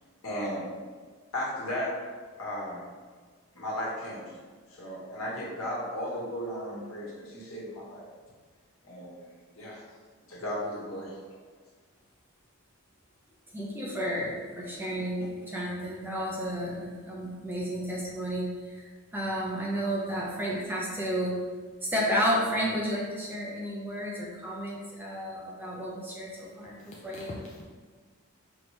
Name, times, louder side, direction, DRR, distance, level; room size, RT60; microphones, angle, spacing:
voice 1, 0.2-0.7 1.3-2.1 2.4-2.9 3.5-4.4 4.7-8.0 8.8-9.2 9.5-9.8 10.3-11.2, equal, 85° left, -5 dB, 1.2 m, -35 dB
voice 2, 13.5-21.4 21.8-27.4, equal, 10° right, -3 dB, 0.6 m, -32 dB
voice 3, 26.4-27.6, left 2 dB, 35° left, -3 dB, 0.3 m, -46 dB
4.5 x 2.9 x 3.1 m, 1.5 s
head